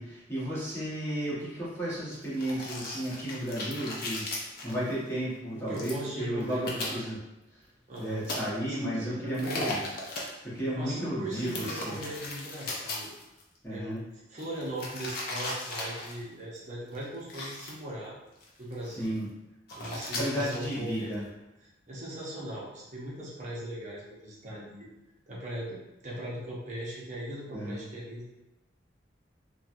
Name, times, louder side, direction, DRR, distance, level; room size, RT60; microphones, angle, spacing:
voice 1, 0.0-7.2 8.0-9.9 10.4-12.0 13.6-14.0 18.8-19.3 20.2-21.3 27.5-27.8, right 1 dB, 15° left, -10 dB, 1.1 m, -33 dB
sound 1, 2.2-4.9 5.7-6.0 6.4-6.9 8.0-8.4 9.3-10.3 11.3-13.4 14.4-16.2 16.8-17.0 17.3-17.7 18.4-18.5 18.7-19.2 19.7-21.2, left 2 dB, 50° left, 0.5 m, -37 dB
voice 2, 5.5-7.0 7.9-8.2 8.6-9.6 10.6-13.1 13.7-13.9 14.3-18.2 18.6-19.3 19.8-21.1 21.9-24.9 25.3-28.3, right 1 dB, 40° right, -5 dB, 0.7 m, -39 dB
3.0 x 2.2 x 2.5 m, 0.96 s
head